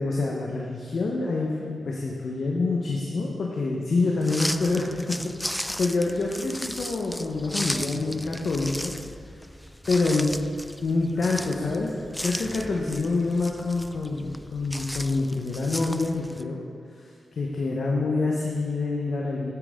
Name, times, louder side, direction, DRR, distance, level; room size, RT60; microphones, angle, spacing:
voice 1, 0.0-5.2 5.5-8.9 9.9-10.3 10.8-16.6 17.0-19.5, left 3 dB, 70° left, -2 dB, 1.1 m, -26 dB
sound 1, 4.2-16.4, equal, 5° left, 0.3 m, -36 dB
9.6 x 8.7 x 3.7 m, 2.5 s
cardioid pair, 65°, 0 cm